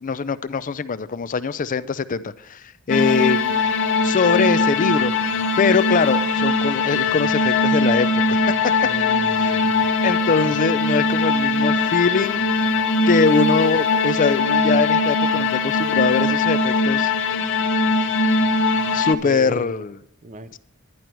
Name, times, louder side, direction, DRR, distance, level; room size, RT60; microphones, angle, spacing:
voice 1, 0.0-3.6 4.0-5.1 5.6-8.7 9.4-9.6 10.0-12.7 13.1-17.1 18.9-20.0 20.5-20.6, left 5 dB, 40° left, 15 dB, 0.5 m, -22 dB
sound 1, 2.9-19.1, left 3 dB, 60° left, 0.9 m, -20 dB
voice 2, 8.8-10.0 19.2-19.8 20.2-20.6, equal, 35° right, 12 dB, 0.7 m, -36 dB
11.0 x 10.0 x 4.5 m, 0.72 s
head